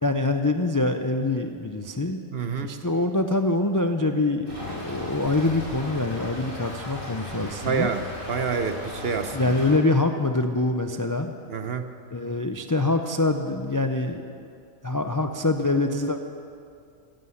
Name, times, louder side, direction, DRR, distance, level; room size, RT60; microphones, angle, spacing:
voice 1, 0.0-2.2 2.6-7.9 9.3-11.4 12.1-14.5 14.8-16.2, left 2 dB, 30° left, 6 dB, 0.4 m, -25 dB
voice 2, 2.3-2.8 7.6-8.0 8.3-9.5 11.5-11.9, right 6 dB, 50° right, 8 dB, 0.9 m, -27 dB
Stream / Trickle dribble, 4.5-9.7, left 1 dB, 85° right, 4.6 m, -37 dB
15.5 x 11.5 x 7.9 m, 2.4 s
omnidirectional pair, 1.4 m